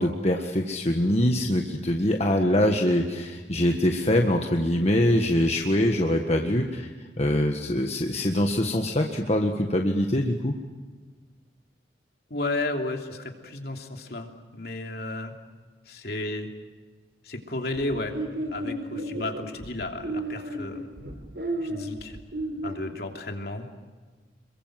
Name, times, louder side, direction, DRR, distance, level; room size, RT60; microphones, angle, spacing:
voice 1, 0.0-10.5, left 1 dB, 35° left, 3 dB, 1.6 m, -24 dB
voice 2, 12.3-15.3 15.9-16.5 17.2-18.1 18.5-20.9 21.6-22.2 22.6-23.6, left 2 dB, 60° left, 3 dB, 3.0 m, -33 dB
sound 1, 17.7-22.8, right 1 dB, 70° right, 3.6 m, -33 dB
27.5 x 23.0 x 7.7 m, 1.4 s
head